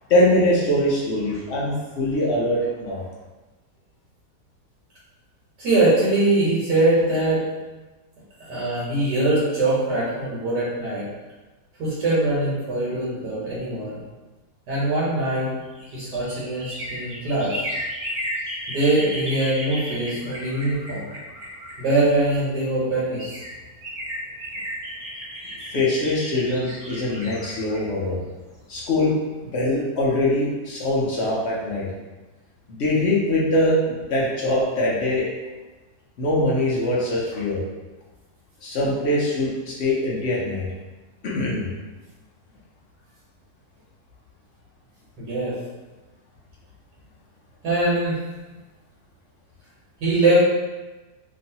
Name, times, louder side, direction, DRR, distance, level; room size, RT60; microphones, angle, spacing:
voice 1, 0.1-3.0 25.7-28.2 28.7-29.2 29.5-31.9 32.7-35.3 36.2-37.6 38.6-40.7 41.2-41.7, left 1 dB, 60° left, -5 dB, 0.7 m, -22 dB
voice 2, 5.6-7.4 8.4-11.1 11.8-14.0 14.7-15.5 15.9-17.5 18.7-21.1 21.8-23.4 45.2-45.5 47.6-48.2 50.0-50.4, right 2 dB, 80° right, -8 dB, 1.5 m, -22 dB
sound 1, 15.5-22.3 22.9-23.0 23.2-29.0 29.3-29.4, equal, 30° right, 0.8 m, -34 dB
3.0 x 2.7 x 2.7 m, 1.2 s
omnidirectional pair, 1.8 m